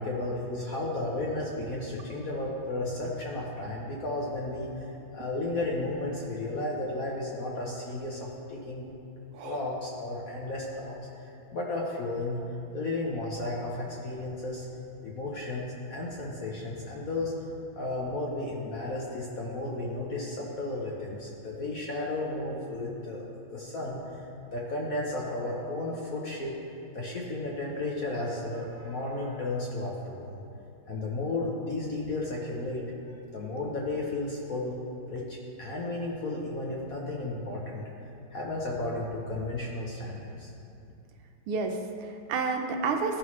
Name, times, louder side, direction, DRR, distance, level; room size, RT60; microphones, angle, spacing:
voice 1, 0.0-4.9 5.1-8.8 9.4-12.4 12.7-14.7 15.0-17.3 17.7-23.2 23.5-24.0 24.5-26.5 26.9-30.4 30.9-32.8 33.3-34.8 35.1-37.8 38.3-40.5, left 2 dB, 55° left, -3 dB, 1.1 m, -33 dB
voice 2, 41.5-43.2, right 4 dB, 80° right, 4 dB, 1.5 m, -30 dB
14.5 x 5.5 x 3.1 m, 2.7 s
omnidirectional pair, 2.4 m